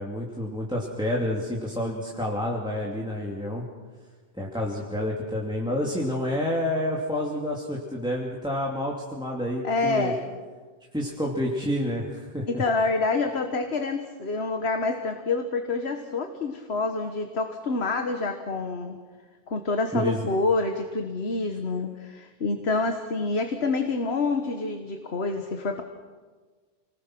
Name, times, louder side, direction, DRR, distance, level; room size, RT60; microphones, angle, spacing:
voice 1, 0.0-3.6 4.3-10.1 10.9-12.6 19.9-20.2, left 1 dB, 5° right, -3 dB, 2.6 m, -29 dB
voice 2, 9.6-10.2 12.5-19.0 19.5-25.8, left 3 dB, 85° left, 5 dB, 1.6 m, -27 dB
30.0 x 20.0 x 6.1 m, 1.4 s
omnidirectional pair, 1.1 m